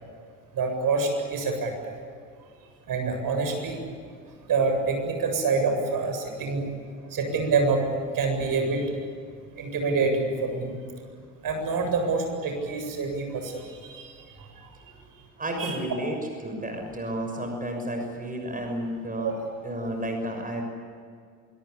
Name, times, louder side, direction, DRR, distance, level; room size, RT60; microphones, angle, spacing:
voice 1, 0.5-1.9 2.9-3.8 4.5-6.7 7.1-7.9 8.1-8.9 9.5-10.7 11.4-14.5 15.6-15.8 19.2-19.5, right 4 dB, 45° right, 4 dB, 7.8 m, -26 dB
voice 2, 15.4-19.3 19.6-20.6, right 1 dB, 20° right, 3 dB, 6.4 m, -32 dB
25.0 x 24.0 x 8.5 m, 2.2 s
hypercardioid pair, 65°, 46 cm